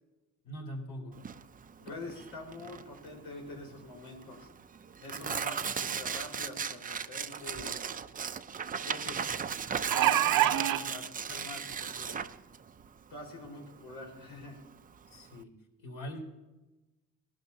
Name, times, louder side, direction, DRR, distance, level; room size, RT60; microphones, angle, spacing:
voice 1, 0.4-1.2 15.1-15.5 15.8-16.2, equal, 70° left, 2 dB, 4.1 m, -42 dB
Tearing, 1.2-15.4, right 7 dB, 25° right, 0.5 m, -37 dB
voice 2, 1.8-4.5 5.0-7.7 8.9-9.3 9.9-12.2 13.1-14.6, left 2 dB, 90° left, 0 dB, 4.7 m, -45 dB
sound 1, 7.5-7.6 7.9-8.0 9.6-10.8 11.7-11.8 12.2-12.3, right 13 dB, 70° right, 0.7 m, -25 dB
19.5 x 12.0 x 2.8 m, 1.1 s
cardioid pair, 130°, 34 cm